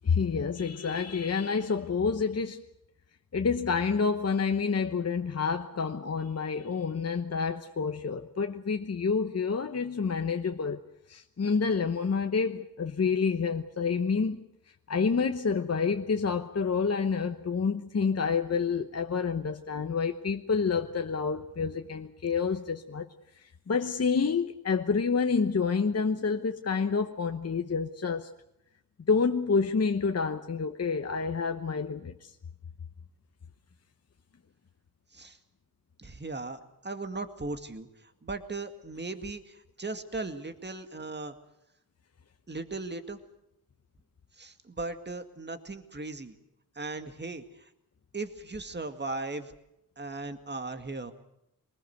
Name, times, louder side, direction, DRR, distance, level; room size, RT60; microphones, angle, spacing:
voice 1, 0.0-2.6 3.3-10.8 11.1-14.4 14.9-23.1 23.4-28.3 29.1-32.3, left 5 dB, 45° left, 1.1 m, -28 dB
voice 2, 36.0-37.9 38.2-41.4 42.5-43.2 44.4-46.3 46.8-47.7 48.1-49.5 50.0-51.1, right 3 dB, 30° right, 2.1 m, -37 dB
24.0 x 20.0 x 8.0 m
wide cardioid pair, 80°, 36 cm